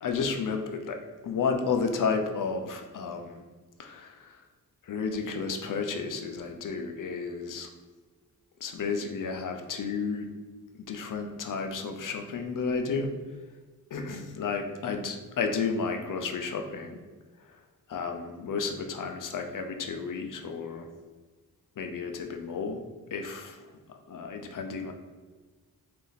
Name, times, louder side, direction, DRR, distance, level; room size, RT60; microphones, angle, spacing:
voice 1, 0.0-1.0 1.2-3.4 3.8-4.1 4.9-7.7 8.6-10.3 10.9-13.1 13.9-17.0 17.9-20.9 21.8-22.8 23.1-23.6 24.1-24.9, left 5 dB, 60° left, 5 dB, 0.5 m, -32 dB
4.0 x 2.5 x 3.9 m, 1.4 s
wide cardioid pair, 140°, 36 cm